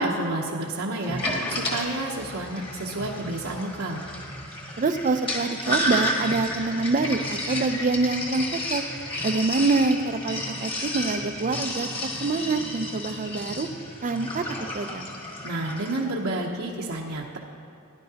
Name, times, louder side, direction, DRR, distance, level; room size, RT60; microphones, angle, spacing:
voice 1, 0.0-4.0 15.4-17.4, right 2 dB, 70° right, -3 dB, 0.9 m, -30 dB
Sink (filling or washing), 1.0-16.0, left 1 dB, 25° left, 1.5 m, -32 dB
voice 2, 4.8-8.8 9.2-11.9 12.2-13.7 14.0-14.4 14.7-15.1, right 3 dB, 35° right, 9 dB, 0.4 m, -25 dB
16.0 x 10.5 x 2.9 m, 2.8 s
head